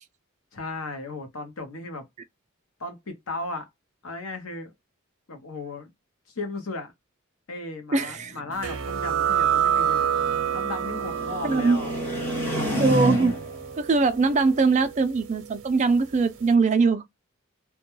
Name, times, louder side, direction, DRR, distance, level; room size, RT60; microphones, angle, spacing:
voice 1, 0.5-2.1 2.8-3.7 4.0-4.7 5.3-5.9 6.3-6.9 7.5-10.1 10.5-11.9, left 3 dB, 85° left, 0.8 m, -35 dB
voice 2, 7.9-8.3 11.4-11.8 12.7-13.3 13.8-17.0, right 4 dB, 35° right, 0.3 m, -21 dB
sound 1, 8.2-13.7, equal, 10° left, 0.8 m, -31 dB
sound 2, 8.6-15.9, right 8 dB, 85° right, 0.6 m, -28 dB
2.2 x 2.2 x 2.9 m
head